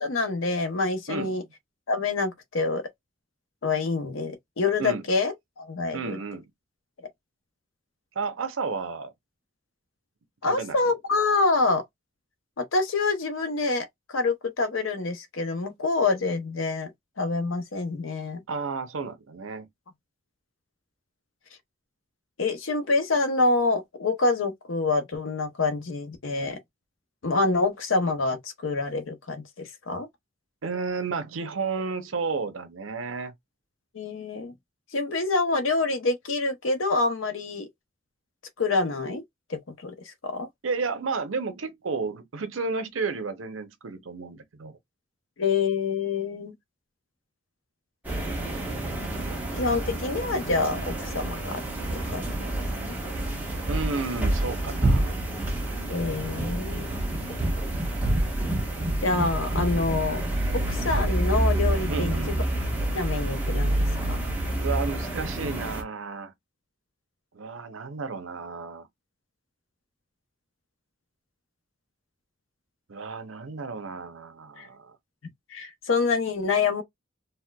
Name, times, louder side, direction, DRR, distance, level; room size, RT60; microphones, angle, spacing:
voice 1, 0.0-1.4 1.9-2.8 3.6-6.2 10.4-11.8 12.6-16.9 17.2-18.4 22.4-26.6 27.2-30.1 33.9-34.5 34.9-37.7 38.6-39.2 39.5-39.9 40.2-40.5 45.4-46.5 49.5-51.6 51.9-52.5 52.8-53.0 55.9-56.9 59.0-60.2 60.7-62.4 62.9-64.2 74.6-74.7 75.5-76.8, left 3 dB, 80° left, 0.7 m, -26 dB
voice 2, 1.1-1.4 4.8-5.0 5.9-6.5 8.2-9.1 10.4-10.8 18.5-19.7 30.6-33.3 40.6-44.8 53.7-55.2 61.9-62.4 64.6-66.3 67.3-68.9 72.9-74.9, right 4 dB, 90° right, 0.7 m, -32 dB
sound 1, 48.0-65.8, right 1 dB, 10° right, 1.0 m, -28 dB
4.2 x 2.1 x 2.2 m
head